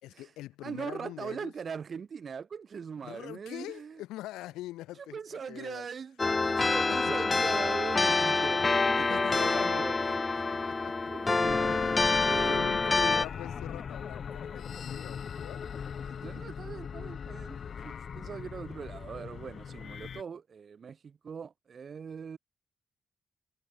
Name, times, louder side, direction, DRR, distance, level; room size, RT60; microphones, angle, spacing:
voice 1, 0.0-1.5 3.0-5.9 6.6-7.1 9.0-11.1 11.6-12.1 12.4-15.7, left 16 dB, 90° left, 1.6 m, -44 dB
voice 2, 0.6-4.0 5.1-10.2 11.1-11.9 12.2-12.6 16.0-22.4, right 6 dB, 60° right, 2.1 m, -41 dB
sound 1, 6.2-13.3, left 3 dB, 35° left, 0.5 m, -27 dB
sound 2, 11.4-20.2, left 7 dB, 60° left, 0.8 m, -39 dB
supercardioid pair, 45°, 0 cm